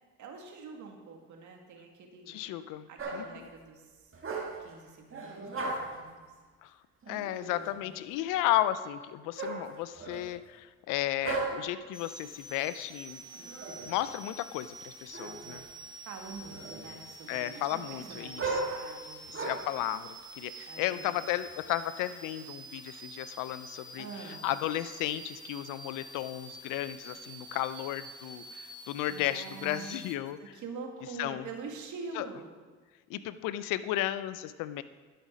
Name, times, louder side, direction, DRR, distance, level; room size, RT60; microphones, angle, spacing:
voice 1, 0.2-2.4 2.9-4.1 4.6-6.3 7.5-8.0 16.0-19.6 20.7-21.3 23.9-24.5 29.1-30.0 30.4-32.5, right 4 dB, 70° right, 2 dB, 1.7 m, -45 dB
voice 2, 2.3-2.9 3.1-3.5 6.6-6.7 7.1-13.2 13.9-15.6 17.3-18.5 19.4-20.1 20.4-24.1 24.4-30.4 31.2-31.5 32.2-32.3 33.1-34.8, left 13 dB, 90° left, 14 dB, 0.5 m, -34 dB
sound 1, 3.0-3.4 4.1-4.7 5.1-6.1 7.0-7.8 9.4-10.4 11.2-11.8 13.3-14.0 15.1-15.7 16.2-17.0 17.5-19.8 20.5-21.6, right 3 dB, 45° right, 1.8 m, -38 dB
sound 2, 11.9-30.1, right 2 dB, 15° right, 1.1 m, -48 dB
12.0 x 5.8 x 5.1 m, 1.4 s
supercardioid pair, 70°, 31 cm